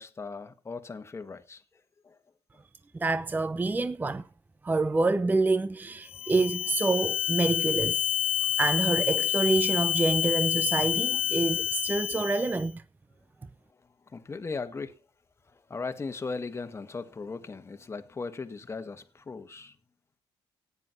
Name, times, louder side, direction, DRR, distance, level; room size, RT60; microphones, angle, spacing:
voice 1, 0.0-1.6 2.0-2.2 14.1-15.0 15.5-19.8, left 4 dB, 25° left, 1.5 m, -38 dB
voice 2, 2.9-4.2 4.6-8.1 8.6-12.8, right 3 dB, 20° right, 0.6 m, -27 dB
sound 1, 6.1-12.7, left 10 dB, 75° left, 1.2 m, -28 dB
14.5 x 9.8 x 4.1 m
cardioid pair, 100°, 10 cm